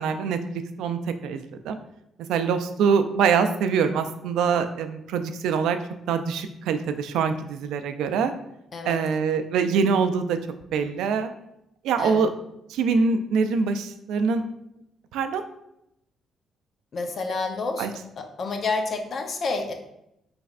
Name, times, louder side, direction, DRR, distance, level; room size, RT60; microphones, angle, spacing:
voice 1, 0.0-1.8 2.3-5.8 6.1-8.3 8.8-10.4 10.7-11.3 11.8-12.3 12.7-14.4 15.1-15.4 17.8-17.9, right 6 dB, 85° right, 9 dB, 0.3 m, -24 dB
voice 2, 16.9-17.9 18.2-19.7, left 3 dB, 50° left, 5 dB, 0.6 m, -29 dB
5.0 x 3.2 x 2.4 m, 0.81 s
cardioid pair, 90°, 0 cm